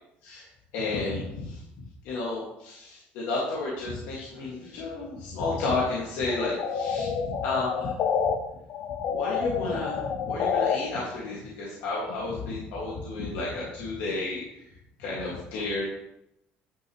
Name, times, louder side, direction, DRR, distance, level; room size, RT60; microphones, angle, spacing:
voice 1, 0.7-1.6 2.0-7.9 8.2-8.3 9.1-14.4 15.0-15.9, left 3 dB, 85° left, -5 dB, 2.0 m, -32 dB
sound 1, 6.3-8.3 8.7-10.8, left 7 dB, 50° left, 0.7 m, -28 dB
10.0 x 6.4 x 3.1 m, 0.82 s
cardioid pair, 160°, 4 cm